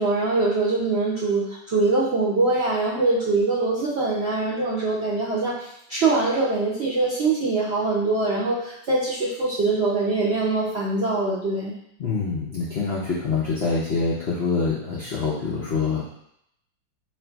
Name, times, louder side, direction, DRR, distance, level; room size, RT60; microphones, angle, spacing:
voice 1, 0.0-11.8, right 3 dB, 70° right, -8 dB, 0.6 m, -23 dB
voice 2, 12.0-16.0, left 4 dB, 75° left, -5 dB, 0.5 m, -25 dB
3.1 x 2.5 x 4.4 m, 0.76 s
omnidirectional pair, 1.9 m